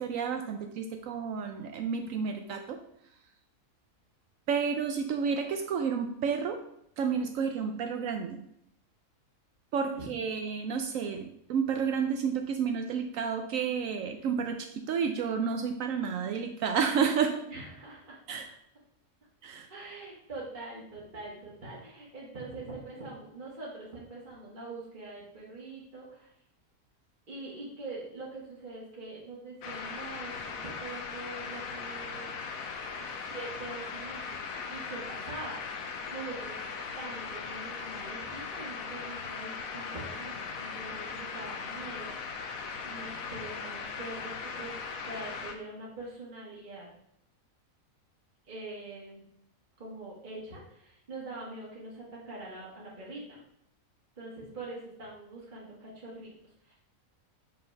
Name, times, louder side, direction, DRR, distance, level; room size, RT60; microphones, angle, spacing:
voice 1, 0.0-2.8 4.5-6.6 7.0-8.4 9.7-17.4 18.3-18.5 19.4-19.7, right 6 dB, 75° right, 5 dB, 1.0 m, -31 dB
voice 2, 10.0-10.4 17.5-18.2 19.7-26.3 27.3-32.4 32.8-34.4 34.7-35.6 35.8-36.5 37.0-42.1 42.8-46.9 48.5-49.2 49.8-53.4 54.2-56.3 56.6-56.7, right 2 dB, 35° right, -6 dB, 1.6 m, -43 dB
sound 1, 29.6-45.5, left 5 dB, 80° left, 1.2 m, -39 dB
5.2 x 4.1 x 5.5 m, 0.75 s
omnidirectional pair, 1.5 m